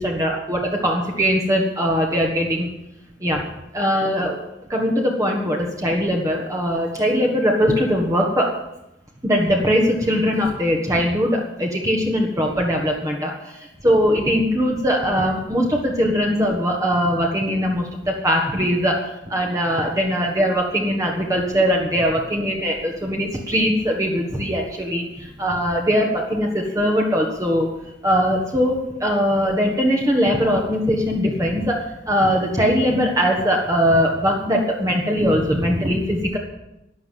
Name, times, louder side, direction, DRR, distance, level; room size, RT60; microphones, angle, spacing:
voice 1, 0.0-2.7 3.2-3.4 3.7-4.4 4.7-8.5 9.2-13.5 13.8-19.0 19.3-27.7 28.0-36.4, equal, 20° right, -1 dB, 1.5 m, -21 dB
12.0 x 10.0 x 7.6 m, 0.89 s
head